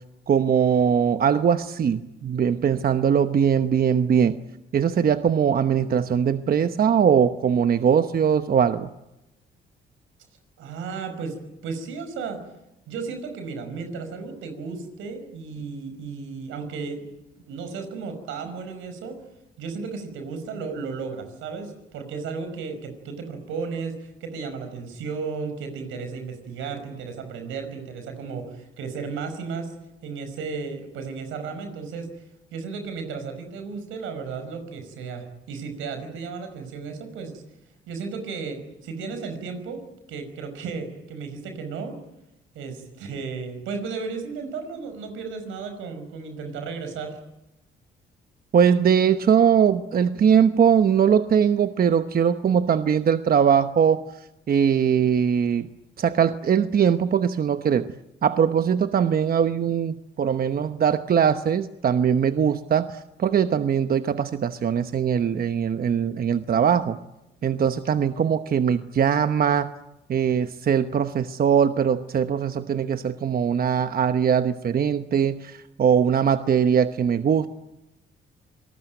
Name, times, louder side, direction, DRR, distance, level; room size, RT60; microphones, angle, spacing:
voice 1, 0.3-4.4 4.7-8.9 48.5-54.0 54.5-55.7 56.0-57.9 58.2-67.0 67.4-69.7 70.1-77.5, right 7 dB, 50° right, 10 dB, 1.0 m, -21 dB
voice 2, 10.6-11.3 11.6-12.4 12.9-17.1 17.5-19.2 19.6-29.7 30.0-32.1 32.5-37.4 37.9-39.8 40.1-42.0 42.5-47.2, right 5 dB, 90° right, 8 dB, 5.4 m, -34 dB
27.5 x 19.5 x 9.2 m, 0.91 s
cardioid pair, 90°, 20 cm